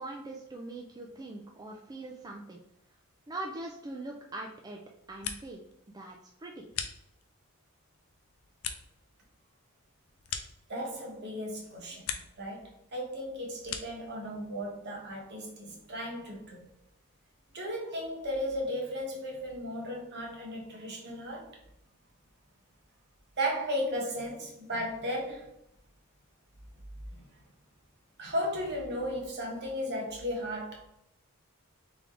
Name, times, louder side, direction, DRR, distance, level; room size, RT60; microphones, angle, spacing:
voice 1, 0.0-2.6 3.3-4.8 5.1-5.6 5.9-6.7, right 2 dB, 20° right, 0.4 m, -42 dB
sound 1, 4.9-5.7 6.0-7.5 7.9-11.2 11.5-12.5 12.8-14.1, left 8 dB, 80° left, 0.5 m, -41 dB
voice 2, 10.7-12.1 12.4-16.6 17.5-21.5 23.4-25.5 27.1-27.2 28.2-30.9, equal, 50° right, 1.2 m, -35 dB
3.5 x 3.3 x 3.7 m
head